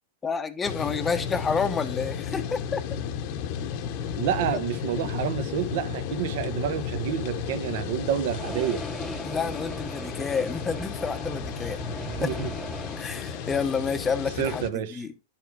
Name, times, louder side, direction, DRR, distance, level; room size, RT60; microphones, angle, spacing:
voice 1, 0.2-2.8 9.2-11.8 12.2-12.3 13.0-15.1, left 5 dB, 15° left, 0.9 m, -29 dB
sound 1, 0.6-14.7, left 8 dB, 45° left, 1.0 m, -34 dB
voice 2, 4.2-8.8 11.9-12.5 13.2-13.3 14.4-15.1, right 9 dB, 55° right, 1.2 m, -29 dB
sound 2, 8.3-13.7, right 1 dB, ahead, 0.5 m, -38 dB
11.0 x 5.8 x 4.9 m
supercardioid pair, 155°, 0 cm